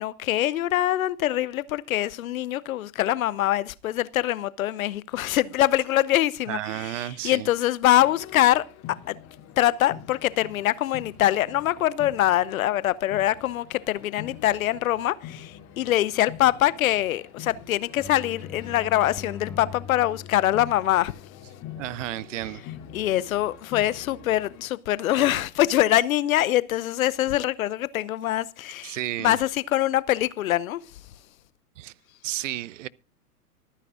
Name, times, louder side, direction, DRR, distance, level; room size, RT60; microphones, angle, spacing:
voice 1, 0.0-8.7 9.1-9.2 9.6-21.1 22.9-30.8, left 13 dB, 60° left, 0.8 m, -24 dB
voice 2, 6.5-7.5 21.8-22.6 28.8-29.4 31.8-31.9 32.2-32.9, right 14 dB, 55° right, 0.6 m, -32 dB
sound 1, 7.9-24.7, left 9 dB, 35° left, 3.0 m, -45 dB
sound 2, 17.9-23.4, left 7 dB, 5° left, 0.6 m, -44 dB
24.5 x 9.9 x 2.5 m
figure-of-eight pair, 105°, 47 cm